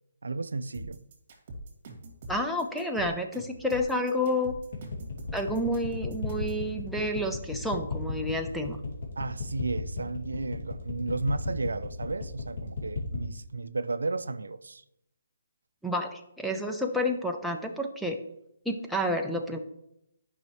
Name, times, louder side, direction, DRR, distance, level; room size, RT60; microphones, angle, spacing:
voice 1, 0.2-1.0 9.2-14.8, right 3 dB, 80° right, 0.4 m, -33 dB
sound 1, 0.7-6.6, right 1 dB, 40° right, 2.4 m, -43 dB
voice 2, 2.3-4.5 5.3-8.8 15.8-18.2 18.7-19.6, left 1 dB, ahead, 0.6 m, -30 dB
sound 2, 4.7-13.3, left 4 dB, 50° left, 2.3 m, -34 dB
11.0 x 5.4 x 3.1 m
hypercardioid pair, 155°, 0 cm